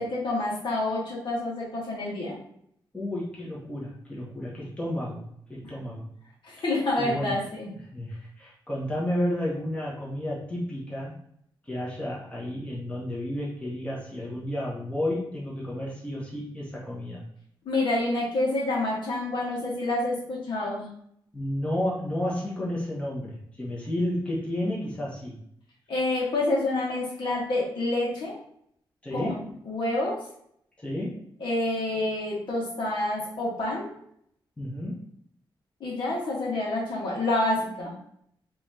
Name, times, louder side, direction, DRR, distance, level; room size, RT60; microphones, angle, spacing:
voice 1, 0.0-2.4 6.4-7.7 17.6-20.9 25.9-28.4 29.1-29.4 29.6-30.2 31.4-33.9 35.8-37.9, left 2 dB, 65° left, -4 dB, 1.7 m, -28 dB
voice 2, 2.9-6.1 7.0-11.1 11.6-17.2 21.3-25.4 29.0-29.5 30.8-31.2 34.6-35.0, left 1 dB, 15° left, -5 dB, 1.1 m, -32 dB
5.6 x 3.1 x 2.8 m, 0.69 s
wide cardioid pair, 160°, 9 cm